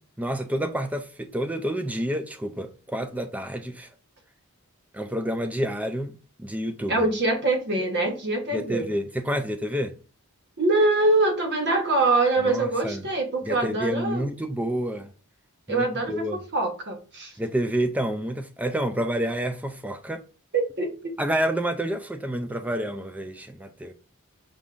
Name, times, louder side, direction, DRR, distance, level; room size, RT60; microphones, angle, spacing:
voice 1, 0.2-3.9 4.9-7.0 8.5-9.9 12.4-13.0 13.4-15.1 15.7-16.4 17.4-20.2 21.2-23.9, equal, 5° right, 0.3 m, -29 dB
voice 2, 6.9-8.9 10.6-14.3 15.7-16.2 16.5-17.3 20.5-21.1, right 2 dB, 50° right, 1.0 m, -24 dB
5.1 x 3.5 x 2.4 m
head